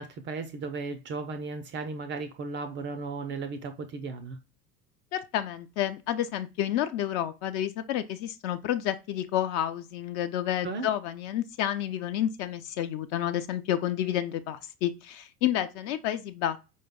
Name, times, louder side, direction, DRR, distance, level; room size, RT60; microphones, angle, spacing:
voice 1, 0.0-4.4 10.6-10.9, right 4 dB, 25° right, 0.4 m, -35 dB
voice 2, 5.1-16.6, left 11 dB, 40° left, 0.4 m, -30 dB
5.0 x 2.2 x 3.4 m
figure-of-eight pair, 70°, 48 cm